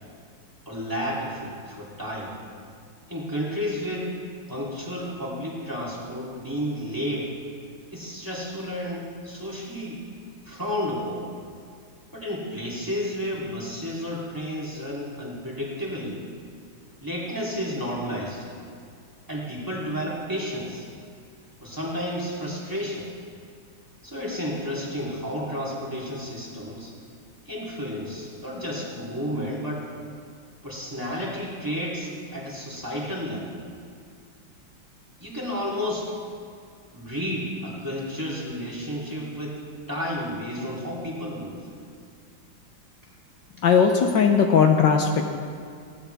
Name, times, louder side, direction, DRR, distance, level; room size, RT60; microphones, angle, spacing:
voice 1, 0.6-2.3 3.1-4.1 4.5-7.3 7.9-10.0 10.4-11.3 12.1-16.2 17.0-18.5 19.3-20.8 21.6-23.1 24.0-26.9 27.4-29.9 30.6-33.5 35.2-36.1 36.9-39.6 39.9-41.7, equal, 10° right, -6 dB, 3.2 m, -31 dB
voice 2, 43.6-45.3, left 6 dB, 65° left, 3 dB, 1.4 m, -18 dB
19.5 x 17.0 x 3.5 m, 2.2 s
omnidirectional pair, 2.2 m